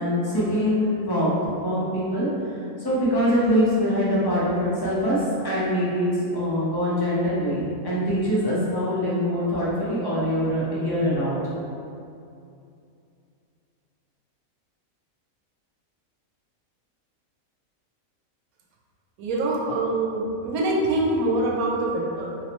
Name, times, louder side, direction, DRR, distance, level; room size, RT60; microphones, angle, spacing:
voice 1, 0.0-2.3 2.8-11.4, equal, 25° left, -8 dB, 0.6 m, -23 dB
voice 2, 19.2-22.3, right 2 dB, 90° right, -2 dB, 1.1 m, -24 dB
4.6 x 2.0 x 2.9 m, 2.5 s
omnidirectional pair, 1.5 m